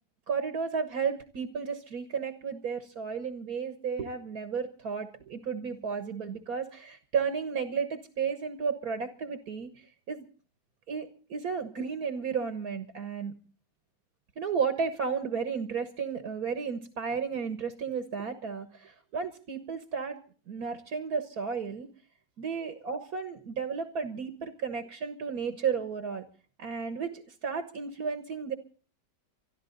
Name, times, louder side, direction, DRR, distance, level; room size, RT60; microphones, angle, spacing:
voice 1, 0.3-9.7 10.1-10.3 10.9-13.3 14.4-20.2 20.5-21.9 22.4-26.3 26.6-28.5, right 6 dB, 60° right, 9 dB, 1.8 m, -33 dB
24.0 x 12.5 x 3.9 m, 0.39 s
omnidirectional pair, 1.8 m